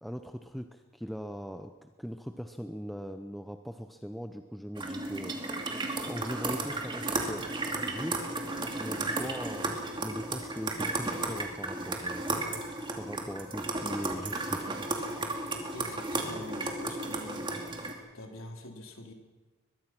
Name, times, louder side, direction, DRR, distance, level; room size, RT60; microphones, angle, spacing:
voice 1, 0.0-5.3 6.0-7.5 7.8-8.2 8.7-12.2 13.0-14.7, equal, ahead, 6 dB, 0.7 m, -40 dB
sound 1, 4.8-17.9, right 2 dB, 25° right, 2.6 m, -34 dB
voice 2, 15.7-17.5 18.1-19.1, left 1 dB, 80° left, 3 dB, 3.5 m, -45 dB
22.5 x 22.5 x 6.0 m, 1.3 s
head